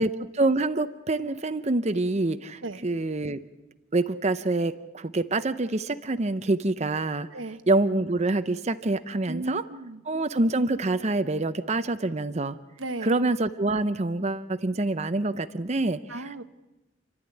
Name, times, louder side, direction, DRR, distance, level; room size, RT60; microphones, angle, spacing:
voice 1, 0.0-3.4 3.9-7.3 7.7-9.6 10.1-12.6 13.0-16.0, right 2 dB, 35° right, 10 dB, 0.7 m, -26 dB
voice 2, 9.3-10.0 12.8-13.2 16.1-16.4, right 2 dB, 90° right, 10 dB, 1.1 m, -35 dB
28.5 x 12.5 x 10.0 m, 1.0 s
head